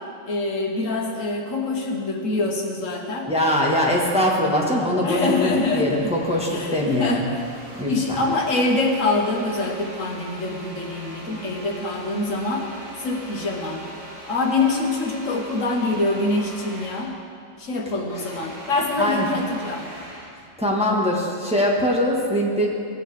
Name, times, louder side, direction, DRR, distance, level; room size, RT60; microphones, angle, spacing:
voice 1, 0.3-3.3 5.0-6.0 6.5-7.2 7.9-12.7 13.0-13.8 14.3-17.1 17.6-19.9, left 2 dB, 70° left, 0 dB, 1.6 m, -25 dB
voice 2, 3.3-7.3 7.7-8.2 19.0-19.3 20.6-22.7, left 1 dB, 5° right, -3 dB, 1.4 m, -22 dB
sound 1, 5.2-17.2 17.5-20.4, right 1 dB, 65° right, 2.8 m, -41 dB
17.0 x 9.1 x 3.4 m, 2.5 s
omnidirectional pair, 1.4 m